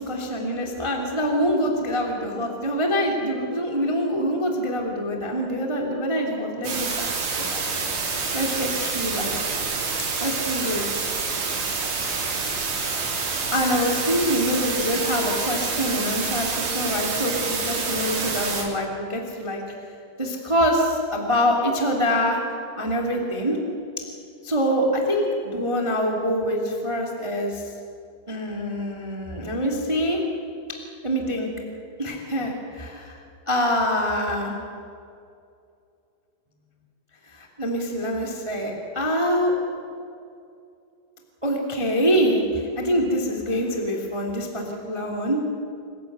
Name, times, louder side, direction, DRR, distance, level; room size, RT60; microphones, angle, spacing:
voice 1, 0.0-7.6 8.3-9.3 10.2-10.8 13.5-19.6 20.2-22.4 22.7-23.6 24.4-27.6 28.3-30.2 31.0-31.5 32.0-33.1 33.5-34.6 37.3-39.5 41.4-45.4, equal, 10° right, 0 dB, 1.9 m, -25 dB
sound 1, 6.6-18.6, right 4 dB, 85° right, 6.4 m, -27 dB
28.0 x 16.0 x 8.2 m, 2.5 s
omnidirectional pair, 5.3 m